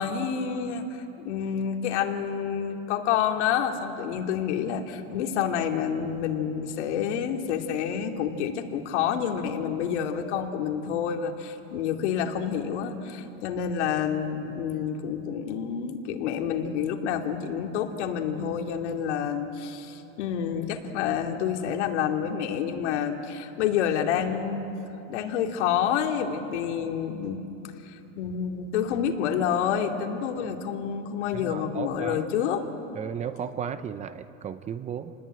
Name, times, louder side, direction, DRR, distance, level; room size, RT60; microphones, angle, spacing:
voice 1, 0.0-24.8 25.1-27.4 28.2-32.6, left 8 dB, 80° left, 3 dB, 2.6 m, -28 dB
voice 2, 31.3-32.2 32.9-35.1, right 8 dB, 20° right, 12 dB, 0.6 m, -34 dB
28.5 x 20.0 x 9.0 m, 3.0 s
supercardioid pair, 155°, 35 cm